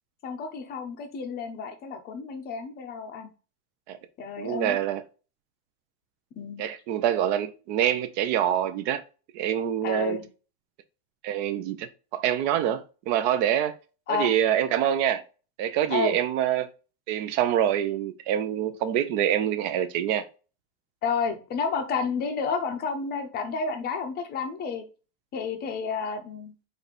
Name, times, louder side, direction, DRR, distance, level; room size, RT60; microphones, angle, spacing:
voice 1, 0.2-3.3 4.2-4.8 6.4-6.6 9.8-10.2 14.1-14.3 15.9-16.2 21.0-24.8 25.3-26.5, left 5 dB, 20° left, 0.6 m, -30 dB
voice 2, 4.4-5.0 6.6-9.0 9.3-10.2 11.2-11.9 12.1-13.7 14.1-15.2 15.6-16.7 17.1-20.2, right 10 dB, 40° right, 0.5 m, -25 dB
4.6 x 2.7 x 4.1 m
supercardioid pair, 155°, 49 cm